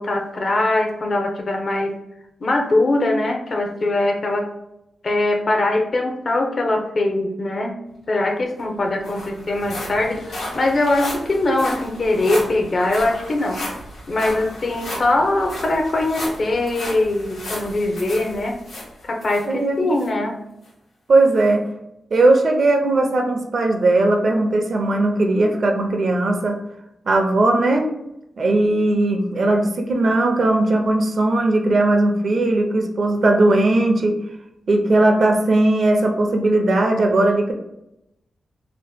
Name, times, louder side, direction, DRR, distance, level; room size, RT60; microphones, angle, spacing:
voice 1, 0.0-2.0 2.4-4.5 5.0-7.8 8.1-13.7 14.1-18.6 19.0-20.4, left 2 dB, 55° left, 3 dB, 0.5 m, -21 dB
sound 1, 8.2-8.3 8.6-19.5 20.0-20.1 20.6-20.7, left 1 dB, 90° left, 1.0 m, -34 dB
voice 2, 19.5-19.9 21.1-21.6 22.1-26.6 27.1-27.9 28.4-34.2 34.7-37.5, right 2 dB, 60° right, 3 dB, 0.5 m, -18 dB
2.8 x 2.1 x 3.4 m, 0.84 s
cardioid pair, 65°, 0 cm